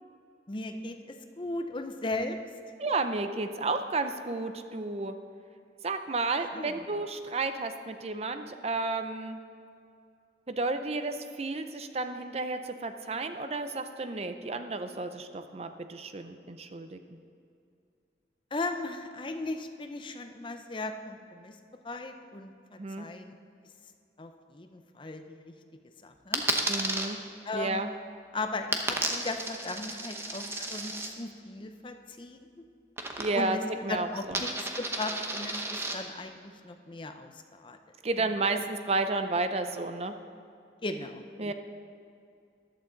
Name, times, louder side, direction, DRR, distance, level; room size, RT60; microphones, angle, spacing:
voice 1, 0.5-2.4 6.5-6.8 18.5-21.6 21.8-23.3 24.2-25.5 26.0-26.5 27.4-27.9 28.3-32.5 33.3-33.6 33.9-37.8 38.2-38.6 40.8-41.5, left 2 dB, 30° left, 7 dB, 0.6 m, -37 dB
voice 2, 2.8-5.1 5.8-9.4 10.5-17.0 22.8-23.1 26.7-27.2 27.5-27.9 33.2-33.6 33.8-34.4 38.0-40.1 41.4-41.5, right 3 dB, 35° right, 8 dB, 0.5 m, -32 dB
Coin (dropping), 26.3-27.1 28.7-31.1 33.0-33.6 33.9-35.9, right 2 dB, 15° right, 0.8 m, -33 dB
14.0 x 11.5 x 3.9 m, 2.4 s
head